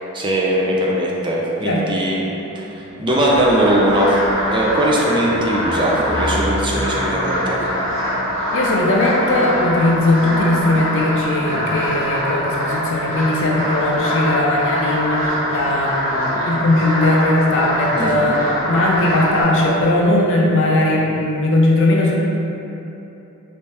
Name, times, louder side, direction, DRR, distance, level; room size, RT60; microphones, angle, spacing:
voice 1, 0.1-2.2 2.6-4.1 4.5-7.6 17.9-18.4, right 1 dB, 20° right, -4 dB, 0.4 m, -20 dB
sound 1, 1.5-15.5 16.0-16.4 16.7-16.8 17.1-20.1, equal, 45° right, 0.8 m, -35 dB
sound 2, 3.1-19.4, equal, 65° right, 1.0 m, -23 dB
voice 2, 8.5-22.2, left 1 dB, 60° left, -2 dB, 0.5 m, -18 dB
3.3 x 2.8 x 3.2 m, 2.9 s
head